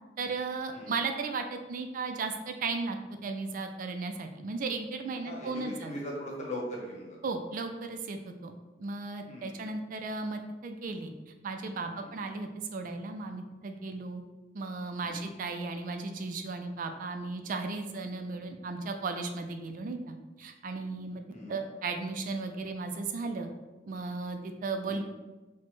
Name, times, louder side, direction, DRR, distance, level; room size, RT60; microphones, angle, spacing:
voice 1, 0.2-5.9 7.2-8.5 8.8-11.1 11.4-14.2 14.5-21.2 21.5-23.5 23.9-25.0, right 3 dB, 50° right, 6 dB, 0.3 m, -35 dB
voice 2, 5.2-7.2 9.2-9.7 12.0-12.1 15.0-15.3 21.3-21.6 24.9-25.0, equal, 40° left, -2 dB, 1.0 m, -40 dB
6.0 x 2.1 x 3.1 m, 1.2 s
head